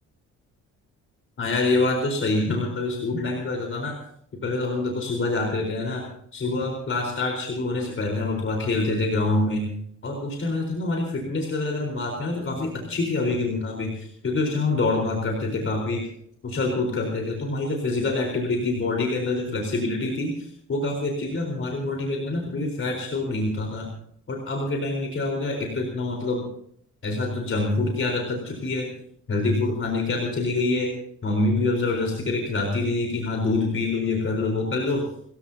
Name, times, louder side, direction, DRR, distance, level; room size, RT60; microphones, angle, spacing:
voice 1, 1.4-3.9 4.4-6.0 6.3-9.7 10.0-16.0 16.4-23.9 24.3-26.5 27.0-28.9 29.3-30.9 31.2-35.0, left 2 dB, 45° left, 1 dB, 4.3 m, -26 dB
29.0 x 14.5 x 2.8 m, 0.67 s
cardioid pair, 90°, 30 cm